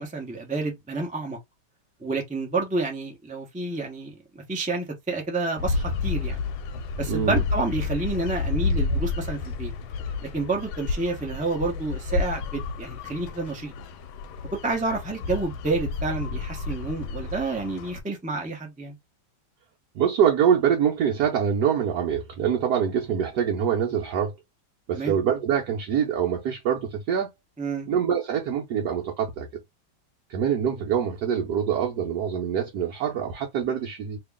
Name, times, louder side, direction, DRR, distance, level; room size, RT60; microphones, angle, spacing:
voice 1, 0.0-1.4 2.0-6.4 7.0-9.7 10.3-13.7 14.6-19.0 24.9-25.2 27.6-27.9, right 3 dB, 10° right, 0.5 m, -29 dB
sound 1, 5.6-18.0, left 4 dB, 85° left, 1.4 m, -30 dB
voice 2, 7.1-7.4 19.9-24.3 24.9-27.3 27.9-29.5 30.3-34.2, right 8 dB, 65° right, 1.2 m, -24 dB
3.0 x 2.8 x 3.5 m
omnidirectional pair, 2.1 m